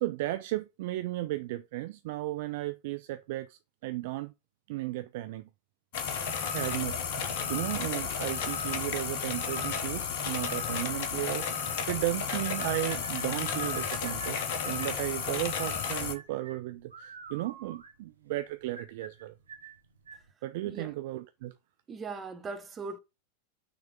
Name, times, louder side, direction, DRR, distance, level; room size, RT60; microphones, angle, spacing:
voice 1, 0.0-4.3 4.7-5.5 6.5-14.4 14.6-19.3 20.4-21.5, right 17 dB, 50° right, 0.4 m, -35 dB
sound 1, 5.9-16.1, left 6 dB, 50° left, 1.1 m, -33 dB
sound 2, 12.3-20.3, right 4 dB, 70° right, 1.0 m, -48 dB
voice 2, 21.9-23.0, right 4 dB, 20° right, 1.1 m, -39 dB
5.9 x 3.4 x 5.1 m
figure-of-eight pair, 90°, 0 cm